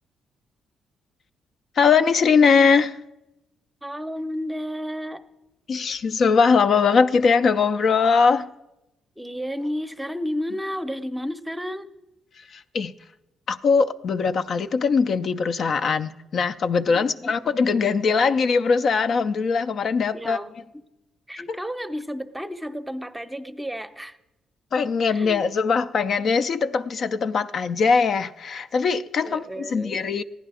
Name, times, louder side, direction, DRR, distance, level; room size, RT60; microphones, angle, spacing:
voice 1, 1.8-3.0 5.7-8.5 12.5-12.9 13.5-20.4 21.5-21.6 24.7-30.2, left 5 dB, 55° left, 0.4 m, -21 dB
voice 2, 3.8-5.2 9.2-11.9 16.9-17.4 20.1-20.8 21.3-24.2 25.1-25.5 29.2-30.0, equal, 5° right, 0.7 m, -32 dB
15.5 x 10.0 x 4.8 m
cardioid pair, 90°, 0 cm